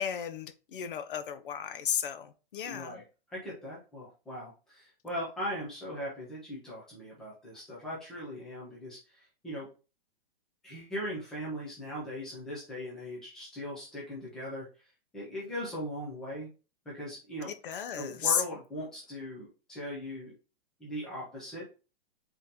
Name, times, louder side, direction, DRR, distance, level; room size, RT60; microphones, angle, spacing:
voice 1, 0.0-3.0 17.5-18.4, left 8 dB, 65° left, 0.7 m, -33 dB
voice 2, 2.6-3.0 3.3-9.7 10.6-14.7 15.1-16.5 16.9-17.5 18.0-20.3 20.8-21.6, equal, ahead, 0.4 m, -39 dB
3.9 x 3.6 x 2.8 m
hypercardioid pair, 175°, 29 cm